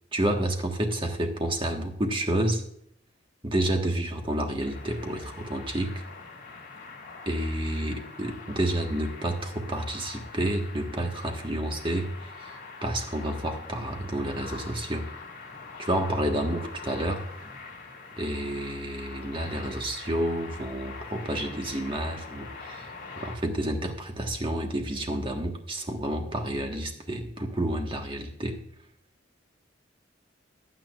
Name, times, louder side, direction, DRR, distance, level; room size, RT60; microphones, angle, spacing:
voice 1, 0.1-2.6 3.4-6.0 7.2-15.1 15.8-17.3 18.2-22.9 23.2-28.6, right 1 dB, 25° right, 3 dB, 1.5 m, -30 dB
sound 1, 4.6-23.4, left 4 dB, 50° left, 2.7 m, -44 dB
15.5 x 10.0 x 2.5 m, 0.71 s
head